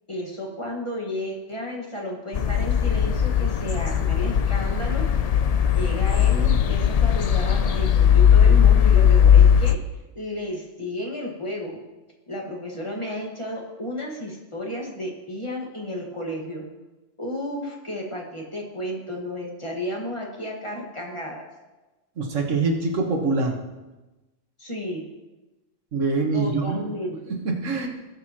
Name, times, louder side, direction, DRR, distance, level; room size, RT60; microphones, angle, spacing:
voice 1, 0.1-5.1 5.7-9.8 10.1-11.8 12.3-16.6 17.2-21.5 24.6-25.0 26.3-27.4, left 1 dB, 25° left, -2 dB, 1.6 m, -32 dB
sound 1, 2.3-9.7, left 8 dB, 65° left, 0.4 m, -18 dB
voice 2, 22.2-23.6 25.9-26.8 27.3-27.9, right 3 dB, 90° right, 2 dB, 1.7 m, -24 dB
18.5 x 6.9 x 3.0 m, 1.1 s
omnidirectional pair, 1.3 m